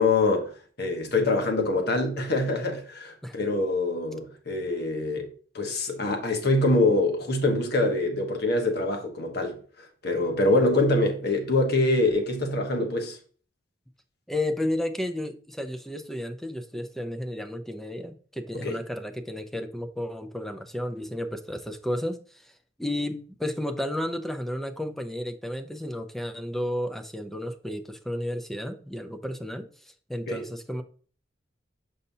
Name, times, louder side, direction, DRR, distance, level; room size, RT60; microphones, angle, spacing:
voice 1, 0.0-9.6 10.0-13.2 18.5-18.8 30.3-30.4, left 2 dB, 60° left, 1.2 m, -25 dB
voice 2, 14.3-22.5 22.8-30.8, left 1 dB, ahead, 0.5 m, -32 dB
6.7 x 5.4 x 2.7 m
head